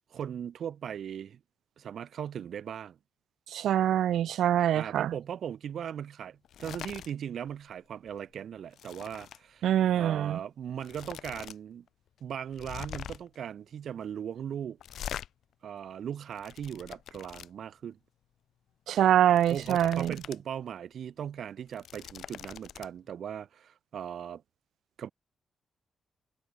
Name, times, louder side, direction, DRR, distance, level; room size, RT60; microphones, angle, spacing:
voice 1, 0.1-1.4 1.8-3.0 4.7-9.7 9.9-11.9 12.2-14.8 15.6-18.0 19.5-24.4 25.0-25.1, right 9 dB, 55° right, 3.7 m, -38 dB
voice 2, 3.5-5.1 9.6-10.4 18.9-20.1, right 11 dB, 85° right, 0.5 m, -24 dB
sound 1, 6.4-7.1 7.5-7.7 8.1-9.4 10.3-10.4 10.8-11.6 11.9-12.0 12.5-13.4 14.8-15.3 16.1-17.5 19.1-20.4 20.8-20.9 21.6-22.9, left 10 dB, 65° left, 4.1 m, -43 dB
wide cardioid pair, 180°, 0 cm